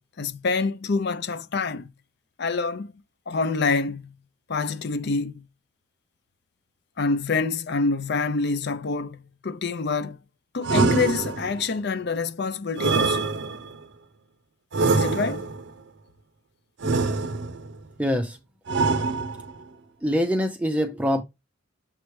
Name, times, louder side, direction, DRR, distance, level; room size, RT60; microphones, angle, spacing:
voice 1, 0.2-1.9 2.4-2.9 3.3-4.1 4.5-5.4 7.0-10.2 10.5-13.3 14.9-15.5, left 4 dB, 55° left, 0.6 m, -26 dB
sound 1, 10.6-11.7 12.8-13.8 14.7-15.7 16.8-17.7 18.7-19.6, right 3 dB, 60° right, 0.6 m, -24 dB
voice 2, 18.0-18.4 20.0-21.2, equal, 5° right, 0.5 m, -24 dB
7.3 x 4.5 x 3.2 m
head